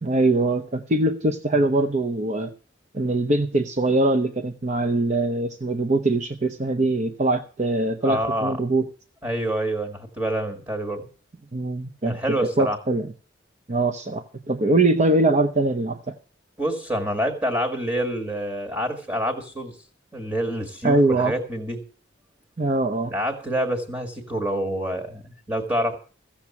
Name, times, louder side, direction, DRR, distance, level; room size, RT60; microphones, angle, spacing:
voice 1, 0.0-2.5 2.9-8.9 11.5-13.1 13.7-16.1 20.8-21.3 22.6-23.1, right 2 dB, 40° right, 6 dB, 0.7 m, -22 dB
voice 2, 8.0-8.5 9.2-11.1 12.0-12.8 16.6-19.7 20.1-21.8 23.1-26.0, right 1 dB, 15° right, 4 dB, 1.9 m, -27 dB
15.0 x 7.2 x 7.2 m, 0.40 s
head